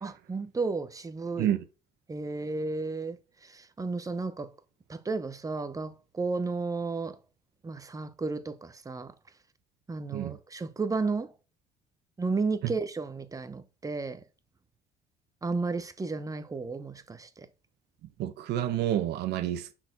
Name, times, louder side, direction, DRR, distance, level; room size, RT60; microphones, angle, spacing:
voice 1, 0.0-1.5 2.1-4.5 4.9-7.2 7.6-9.1 9.9-11.3 12.2-14.2 15.4-17.5, right 3 dB, 20° right, 1.0 m, -33 dB
voice 2, 18.2-19.7, right 11 dB, 80° right, 1.0 m, -29 dB
5.9 x 4.4 x 6.0 m
cardioid pair, 110°, 17 cm